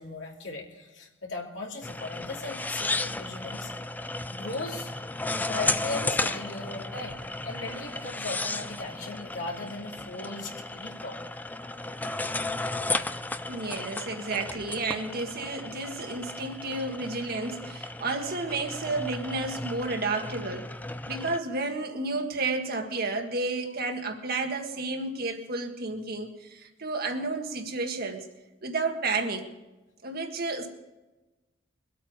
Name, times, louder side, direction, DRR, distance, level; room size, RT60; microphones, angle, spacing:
voice 1, 0.0-3.7 4.3-4.9 5.4-11.2, left 3 dB, 70° left, 2.7 m, -38 dB
sound 1, 1.8-21.4, left 2 dB, 10° left, 0.4 m, -34 dB
voice 2, 13.4-20.7 21.1-28.2 28.6-29.5 30.0-30.7, right 3 dB, 50° right, 1.7 m, -31 dB
23.0 x 8.5 x 4.8 m
head